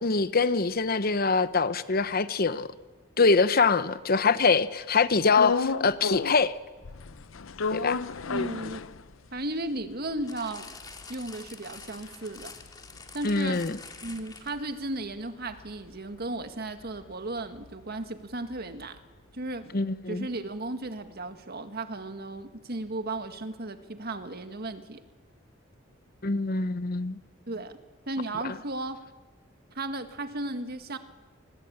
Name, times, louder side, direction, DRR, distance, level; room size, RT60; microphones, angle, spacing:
voice 1, 0.0-2.7 3.2-6.5 7.7-8.0 13.2-13.8 19.7-20.3 26.2-27.2 28.4-28.5, left 4 dB, 50° left, 0.9 m, -24 dB
sound 1, 5.3-6.5 6.8-9.4 9.8-9.9 10.1-14.6 14.9-19.0, left 4 dB, 80° left, 0.7 m, -34 dB
voice 2, 8.2-8.8 9.3-10.7 11.1-12.5 13.1-13.6 14.0-19.0 19.3-19.7 20.1-25.0 27.5-27.8 28.1-29.0 29.7-31.0, right 2 dB, 50° right, 1.8 m, -35 dB
sound 2, 10.3-14.7 15.4-15.5, left 4 dB, 20° left, 2.1 m, -46 dB
28.5 x 20.5 x 8.8 m
head